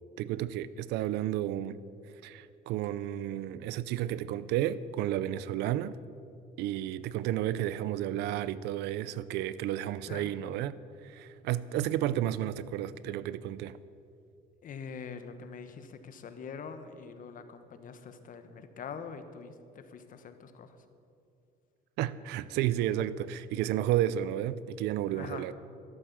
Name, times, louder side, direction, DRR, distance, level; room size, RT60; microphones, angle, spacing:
voice 1, 0.2-1.8 2.2-6.0 6.6-10.8 11.0-13.8 22.0-25.5, right 12 dB, 90° right, 0.6 m, -32 dB
voice 2, 14.6-20.8 25.1-25.5, left 6 dB, 55° left, 1.3 m, -44 dB
12.5 x 12.0 x 7.4 m
cardioid pair, 110°, 17 cm